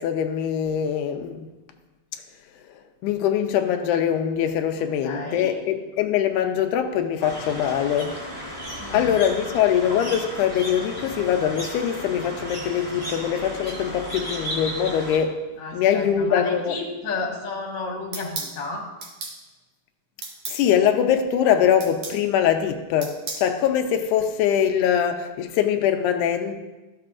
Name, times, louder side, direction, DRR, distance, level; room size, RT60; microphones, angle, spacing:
voice 1, 0.0-1.5 2.7-8.2 8.7-15.4 15.7-16.8 20.5-26.6, left 9 dB, 90° left, 2.1 m, -23 dB
voice 2, 5.0-5.5 8.8-9.1 15.6-18.9, left 3 dB, 45° left, 1.6 m, -32 dB
sound 1, 7.2-15.2, equal, 5° right, 1.9 m, -34 dB
sound 2, 18.1-18.5 19.0-19.4 20.2-20.6 21.8-22.2 23.0-23.5, right 4 dB, 60° right, 2.0 m, -33 dB
13.0 x 6.7 x 2.4 m
omnidirectional pair, 3.5 m